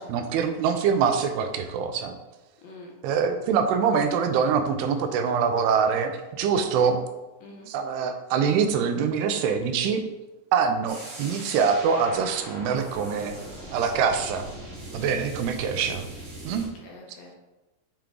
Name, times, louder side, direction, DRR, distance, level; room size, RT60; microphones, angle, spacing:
voice 1, 0.0-2.2 3.0-7.0 7.7-10.0 10.5-13.4 13.7-14.5 14.9-16.1 16.5-16.6, right 6 dB, 85° right, 7 dB, 2.7 m, -24 dB
voice 2, 2.6-2.9 7.4-7.7 15.0-15.2 15.6-16.0 16.6-17.4, left 2 dB, 70° left, -1 dB, 2.4 m, -46 dB
sound 1, 10.9-16.7, right 1 dB, 45° right, 1.4 m, -40 dB
7.3 x 4.5 x 3.8 m, 1.1 s
omnidirectional pair, 4.6 m